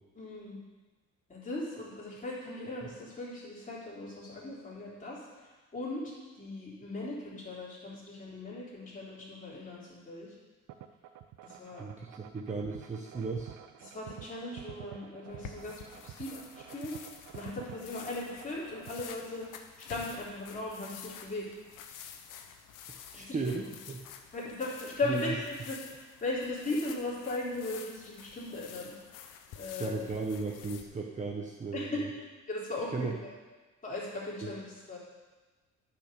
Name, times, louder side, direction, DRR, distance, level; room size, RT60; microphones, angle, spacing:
voice 1, 0.2-0.6 1.3-10.3 11.4-11.9 13.8-17.0 17.3-19.5 19.9-21.5 23.1-23.5 24.3-29.2 29.5-30.0 31.7-32.0 32.5-33.3 33.8-35.0, left 2 dB, 25° left, -6 dB, 3.6 m, -38 dB
sound 1, 10.7-19.6, right 11 dB, 90° right, 0.6 m, -49 dB
voice 2, 11.8-13.5 22.9-24.0 25.1-25.2 29.8-32.1 32.9-33.1 34.4-34.5, right 4 dB, 25° right, 0 dB, 0.9 m, -36 dB
sound 2, 15.3-30.8, left 8 dB, 85° left, 0.9 m, -49 dB
10.0 x 5.9 x 6.8 m, 1.3 s
cardioid pair, 130°, 31 cm